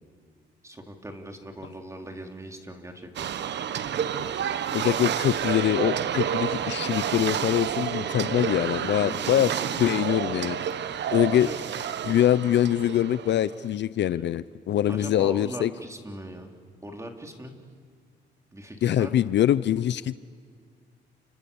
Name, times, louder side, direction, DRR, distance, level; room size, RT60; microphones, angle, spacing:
voice 1, 0.6-3.3 9.0-9.4 11.3-11.6 14.1-14.2 14.9-16.5 16.8-17.6 18.5-19.3, right 1 dB, 15° right, 3 dB, 3.5 m, -40 dB
sound 1, 3.2-13.6, right 9 dB, 60° right, 1.1 m, -29 dB
voice 2, 4.7-9.5 9.8-10.6 11.1-11.5 12.0-15.7 18.8-20.1, left 11 dB, 65° left, 16 dB, 0.6 m, -24 dB
30.0 x 26.0 x 7.1 m, 2.1 s
cardioid pair, 90°, 20 cm